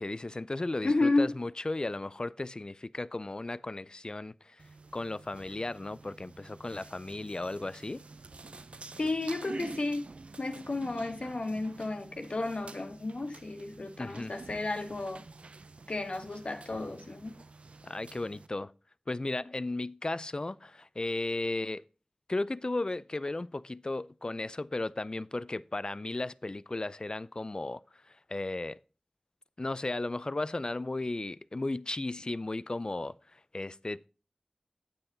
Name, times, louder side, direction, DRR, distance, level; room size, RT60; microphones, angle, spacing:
voice 1, 0.0-4.6 4.9-8.0 14.0-14.3 17.8-18.7 19.1-21.8 22.3-27.8 28.1-28.8 29.6-34.1, left 2 dB, 45° left, 0.4 m, -35 dB
voice 2, 0.8-1.3 9.0-10.1 10.4-15.2 15.9-17.4, left 2 dB, 70° left, 1.4 m, -32 dB
sound 1, 4.6-18.5, right 3 dB, 80° right, 0.5 m, -49 dB
8.7 x 7.7 x 3.9 m
wide cardioid pair, 50°, 2 cm